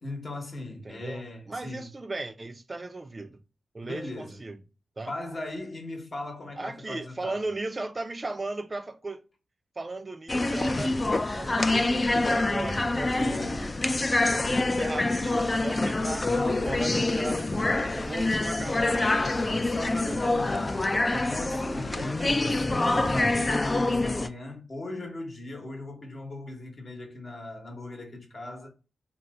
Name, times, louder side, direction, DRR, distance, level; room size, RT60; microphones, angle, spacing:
voice 1, 0.0-1.9 3.8-4.4 5.1-7.5 13.2-13.8 14.4-14.9 16.2-17.2 19.2-28.7, left 2 dB, 45° left, 1.0 m, -38 dB
voice 2, 0.8-3.4 3.7-4.6 5.0-5.1 6.6-9.2 9.8-13.3 13.5-13.7 14.3-16.3 16.6-19.2 20.1-20.5 20.9-22.5, right 2 dB, 35° right, 0.4 m, -37 dB
sound 1, 10.3-24.3, left 2 dB, 30° left, 0.3 m, -26 dB
2.7 x 2.0 x 3.4 m
cardioid pair, 50°, 0 cm